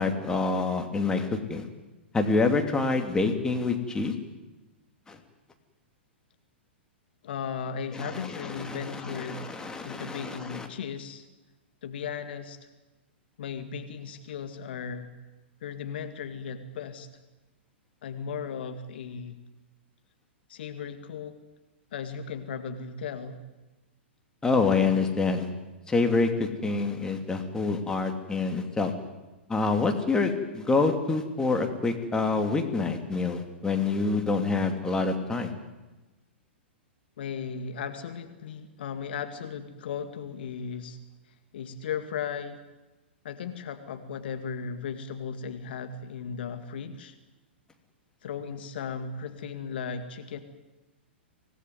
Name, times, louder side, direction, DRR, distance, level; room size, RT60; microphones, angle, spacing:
voice 1, 0.0-1.7 2.1-4.1 5.1-5.2 7.9-10.7 24.4-25.5 25.9-28.9 29.5-35.5, left 3 dB, 10° left, 4 dB, 2.9 m, -27 dB
voice 2, 7.2-9.6 9.8-11.3 11.8-12.6 13.4-15.1 15.6-17.1 18.0-19.4 20.5-21.4 21.9-23.4 37.2-41.0 41.5-42.6 43.2-47.2 48.2-50.4, left 6 dB, 60° left, 8 dB, 2.0 m, -36 dB
25.0 x 18.0 x 9.6 m, 1.1 s
figure-of-eight pair, 110°, 6 cm